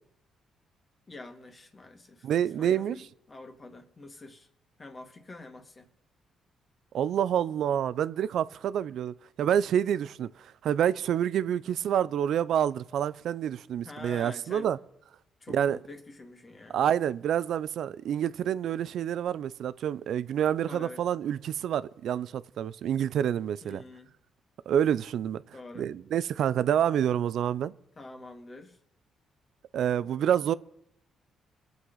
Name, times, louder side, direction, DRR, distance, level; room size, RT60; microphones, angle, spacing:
voice 1, 1.1-4.5 4.8-5.9 13.8-14.7 15.4-16.8 20.6-21.0 23.6-24.1 25.5-25.9 28.0-28.8, left 2 dB, 30° left, 1.9 m, -46 dB
voice 2, 2.2-3.0 6.9-10.3 10.6-14.8 15.5-15.8 16.7-23.8 24.7-25.4 25.8-27.7 29.7-30.5, right 9 dB, 70° right, 0.5 m, -28 dB
21.5 x 8.0 x 3.9 m
cardioid pair, 90°, 0 cm